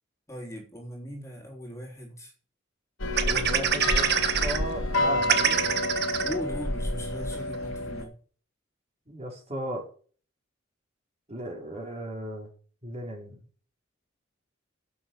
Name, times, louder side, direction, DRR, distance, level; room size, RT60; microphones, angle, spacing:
voice 1, 0.3-2.3 6.2-8.2, equal, 15° left, 3.5 m, -38 dB
sound 1, 3.0-8.0, left 2 dB, 85° left, 2.5 m, -29 dB
voice 2, 3.2-5.7 9.1-9.8 11.3-12.5 12.8-13.4, right 1 dB, 35° right, 4.6 m, -36 dB
sound 2, 3.2-4.6 4.9-5.0 5.2-6.3 6.9-7.0 7.3-7.6, right 8 dB, 55° right, 1.4 m, -25 dB
11.5 x 8.0 x 7.2 m
head